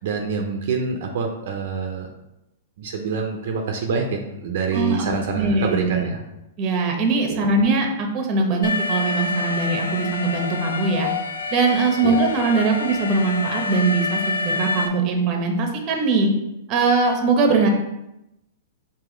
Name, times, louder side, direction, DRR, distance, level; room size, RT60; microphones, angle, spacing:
voice 1, 0.0-2.1 2.8-6.2 7.3-7.5 12.0-12.2, right 5 dB, 60° right, 3 dB, 0.6 m, -26 dB
voice 2, 4.7-5.9 6.6-11.1 11.5-16.3 16.7-17.7, right 3 dB, 30° right, 3 dB, 0.9 m, -21 dB
Alarm, 8.6-14.9, left 3 dB, 85° left, 0.5 m, -27 dB
4.8 x 2.8 x 3.8 m, 0.89 s
hypercardioid pair, 145°, 0 cm